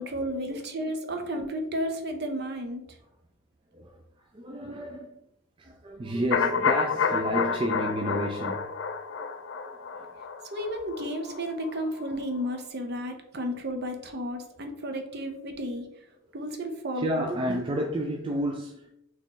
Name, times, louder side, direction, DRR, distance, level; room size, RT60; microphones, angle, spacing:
voice 1, 0.0-2.8 10.4-15.9 16.3-17.3, equal, 50° right, 5 dB, 0.7 m, -32 dB
voice 2, 3.7-5.2 5.6-10.1 16.2-16.3 17.0-18.9, right 1 dB, 25° right, 2 dB, 0.3 m, -32 dB
sound 1, 6.3-12.2 12.5-12.6, left 6 dB, 55° left, 0.3 m, -29 dB
4.2 x 3.0 x 3.9 m, 0.81 s
head